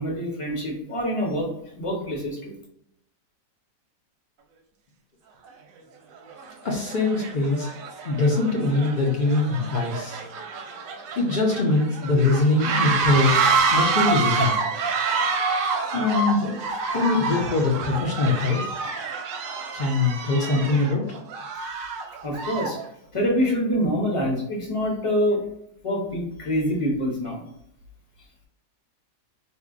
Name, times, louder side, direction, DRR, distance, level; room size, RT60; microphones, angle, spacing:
voice 1, 0.0-2.5 22.2-22.8 23.1-25.4 25.8-27.4, equal, 25° left, -1 dB, 0.7 m, -25 dB
sound 1, 5.5-5.6 6.3-6.5 6.9-22.8, right 4 dB, 70° right, 0.9 m, -27 dB
voice 2, 6.6-7.7 8.0-10.2 11.2-13.3 13.7-14.6 15.9-16.6 16.9-18.6 19.7-21.0, left 3 dB, 75° left, -2 dB, 0.4 m, -22 dB
4.2 x 2.6 x 2.4 m, 0.77 s
omnidirectional pair, 1.8 m